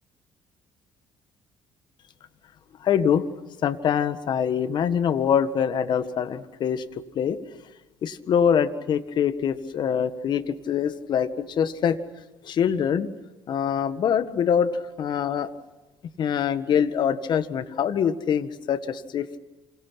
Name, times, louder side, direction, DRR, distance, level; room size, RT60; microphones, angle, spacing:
voice 1, 2.8-3.2 3.6-6.8 7.2-7.4 8.0-12.0 12.4-13.1 13.5-15.5 16.2-19.3, left 8 dB, 60° left, 12 dB, 1.8 m, -24 dB
29.0 x 28.0 x 5.9 m, 1.1 s
supercardioid pair, 75°, 9 cm